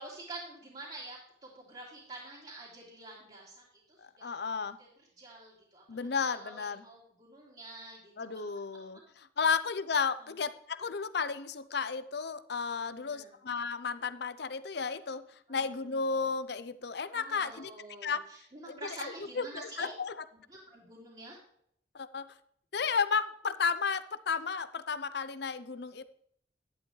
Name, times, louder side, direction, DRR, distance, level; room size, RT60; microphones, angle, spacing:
voice 1, 0.0-4.4 4.8-4.9 5.2-8.6 10.2-10.3 12.9-13.3 15.5-15.9 17.1-19.9 20.5-21.4, right 2 dB, 35° right, -5 dB, 2.8 m, -48 dB
voice 2, 4.0-4.8 5.9-6.8 8.2-9.0 9.4-15.2 15.5-17.7 18.0-18.2 18.7-20.1 21.9-22.3 22.7-26.0, left 5 dB, 65° left, 12 dB, 0.7 m, -33 dB
11.5 x 11.0 x 3.2 m, 0.67 s
head